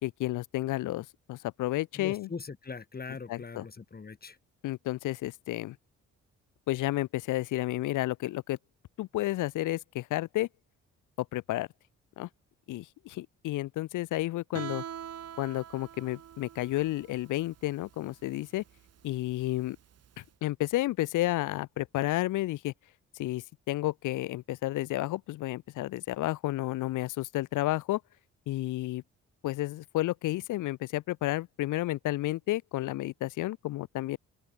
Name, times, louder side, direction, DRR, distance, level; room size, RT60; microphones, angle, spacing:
voice 1, 0.0-2.3 3.3-3.6 4.6-5.8 6.7-8.6 9.0-10.5 11.3-11.7 12.2-12.3 12.7-14.8 15.4-18.6 19.0-19.8 20.2-22.7 23.1-28.0 28.5-29.0 29.4-34.2, left 16 dB, 90° left, 1.8 m, -31 dB
voice 2, 2.0-4.4, left 5 dB, 30° left, 3.6 m, -41 dB
Guitar, 14.5-20.2, right 9 dB, 55° right, 1.6 m, -44 dB
open air
cardioid pair, 90°, 30 cm